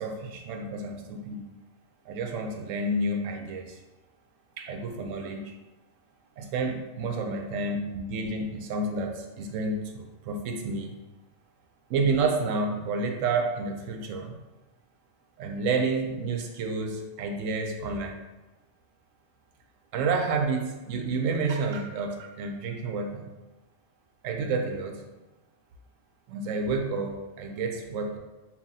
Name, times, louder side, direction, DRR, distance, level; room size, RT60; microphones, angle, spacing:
voice 1, 0.0-1.5 2.1-3.8 4.6-5.6 6.4-10.9 11.9-14.4 15.4-18.2 19.9-23.3 24.2-25.0 26.3-28.2, right 3 dB, 75° right, 4 dB, 0.9 m, -30 dB
5.5 x 2.4 x 2.7 m, 1.1 s
omnidirectional pair, 1.4 m